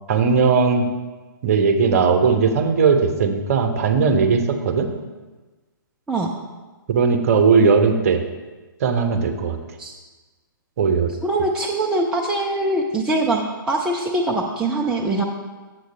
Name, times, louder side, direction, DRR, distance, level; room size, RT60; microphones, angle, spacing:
voice 1, 0.1-0.9 1.4-4.9 6.9-8.2 8.8-9.6 10.8-11.1, right 5 dB, 40° right, 7 dB, 0.9 m, -18 dB
voice 2, 11.2-15.2, right 2 dB, 5° right, -1 dB, 0.4 m, -23 dB
7.8 x 7.6 x 3.4 m, 1.2 s
figure-of-eight pair, 120°, 11 cm